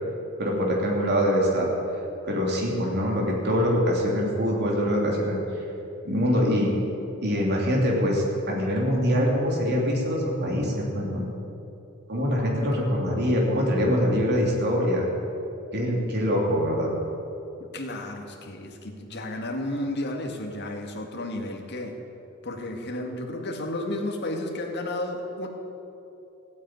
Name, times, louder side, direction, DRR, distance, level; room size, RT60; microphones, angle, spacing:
voice 1, 0.4-1.7 2.2-5.4 6.0-6.7 7.2-11.3 12.1-15.1 15.7-16.9, equal, 50° right, -2 dB, 3.2 m, -24 dB
voice 2, 17.6-22.0 22.4-25.5, left 1 dB, 50° left, 2 dB, 2.0 m, -32 dB
15.5 x 9.2 x 9.0 m, 2.9 s
head